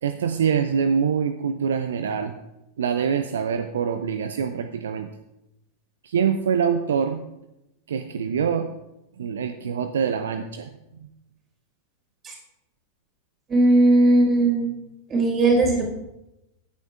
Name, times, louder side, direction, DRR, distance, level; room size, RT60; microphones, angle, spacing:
voice 1, 0.0-2.3 2.8-5.1 6.0-7.2 7.9-8.7 9.2-10.7 11.0-11.1, right 7 dB, 65° right, 8 dB, 0.6 m, -24 dB
voice 2, 13.5-14.6 15.1-15.8, right 2 dB, 25° right, 1 dB, 4.5 m, -18 dB
16.5 x 9.7 x 2.4 m, 0.90 s
figure-of-eight pair, 90°, 0 cm